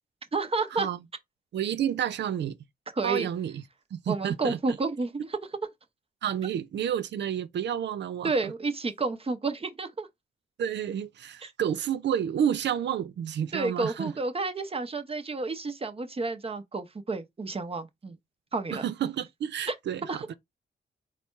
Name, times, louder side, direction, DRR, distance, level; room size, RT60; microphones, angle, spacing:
voice 1, 0.3-0.9 2.9-3.3 4.1-5.4 8.2-10.1 11.4-11.5 13.5-18.2 18.5-18.8 19.7-19.8 20.1-20.3, right 3 dB, 35° right, 0.8 m, -30 dB
voice 2, 1.5-2.6 3.0-3.6 3.9-4.6 6.2-8.3 10.6-14.1 18.7-20.3, right 9 dB, 85° right, 0.5 m, -30 dB
4.1 x 2.2 x 4.5 m
cardioid pair, 75°, 18 cm